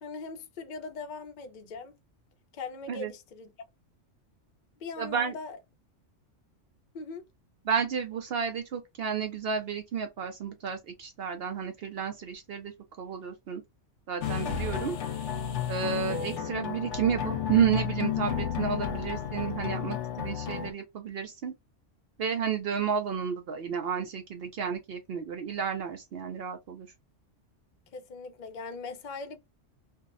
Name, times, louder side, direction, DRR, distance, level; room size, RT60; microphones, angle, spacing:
voice 1, 0.0-1.9 2.5-3.5 4.8-5.6 6.9-7.2 27.9-29.4, left 4 dB, 50° left, 0.6 m, -40 dB
voice 2, 5.0-5.4 7.7-12.7 13.0-13.6 14.1-15.0 15.7-21.5 22.2-26.9, right 7 dB, 65° right, 0.7 m, -31 dB
sound 1, 14.2-20.7, left 8 dB, 75° left, 0.9 m, -32 dB
2.6 x 2.0 x 2.4 m
omnidirectional pair, 1.3 m